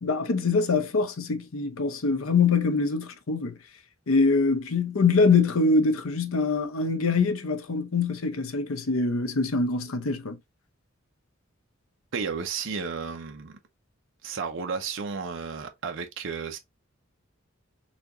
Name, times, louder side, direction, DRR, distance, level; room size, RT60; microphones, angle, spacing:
voice 1, 0.0-3.5 4.1-10.4, left 4 dB, 85° left, 0.7 m, -24 dB
voice 2, 12.1-13.6 14.2-16.6, right 5 dB, 65° right, 0.6 m, -33 dB
4.2 x 2.8 x 2.6 m
head